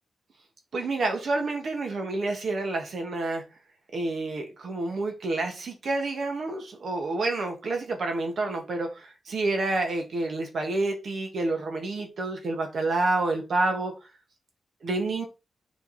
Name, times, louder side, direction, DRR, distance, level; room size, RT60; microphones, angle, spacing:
voice 1, 0.7-3.4 3.9-13.9 14.8-15.2, right 2 dB, 60° right, 2.3 m, -28 dB
7.6 x 4.4 x 4.4 m
wide cardioid pair, 120°, 0 cm